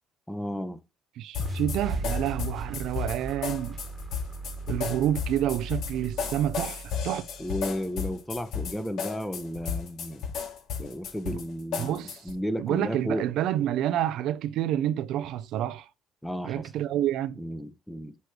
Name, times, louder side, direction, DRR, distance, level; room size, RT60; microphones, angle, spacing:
voice 1, 0.3-0.8 7.4-10.2 10.8-13.3 16.2-16.7 17.4-18.1, equal, 5° left, 1.0 m, -33 dB
voice 2, 1.2-3.8 4.7-7.3 11.2-11.4 11.8-12.2 12.6-15.9 16.4-17.4, right 11 dB, 75° right, 0.5 m, -28 dB
sound 1, 1.3-12.4, left 7 dB, 65° left, 2.4 m, -34 dB
sound 2, 1.4-7.6, right 2 dB, 25° right, 1.4 m, -36 dB
8.1 x 3.2 x 6.0 m
supercardioid pair, 80°, 0 cm